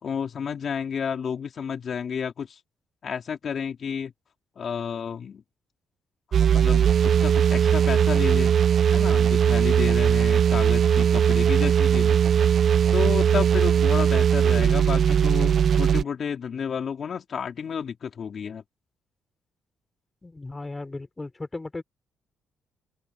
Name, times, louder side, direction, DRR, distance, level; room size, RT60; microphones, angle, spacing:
voice 1, 0.0-2.6 3.0-4.1 4.6-5.4 6.3-8.5 8.9-12.6 12.9-18.6, left 7 dB, 50° left, 3.4 m, -31 dB
sound 1, 6.3-16.0, right 8 dB, 55° right, 0.7 m, -19 dB
voice 2, 20.2-21.8, left 2 dB, 20° left, 4.1 m, -36 dB
open air
cardioid pair, 90°, 0 cm